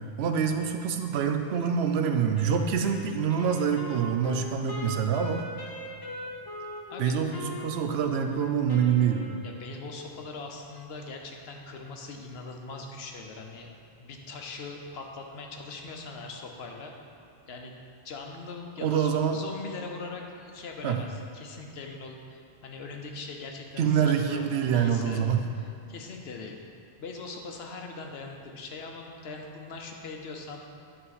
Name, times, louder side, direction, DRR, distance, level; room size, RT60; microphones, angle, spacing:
voice 1, 0.2-5.4 7.0-9.3 18.8-19.4 20.8-21.0 23.8-25.5, right 7 dB, 80° right, 5 dB, 0.8 m, -26 dB
Wind instrument woodwind instrument, 2.3-9.8, left 1 dB, 30° left, 0.6 m, -41 dB
voice 2, 9.4-16.9 17.5-17.8 18.0-26.6 27.0-30.7, left 3 dB, 75° left, 2 dB, 1.0 m, -41 dB
9.7 x 3.8 x 4.1 m, 2.6 s
omnidirectional pair, 1.1 m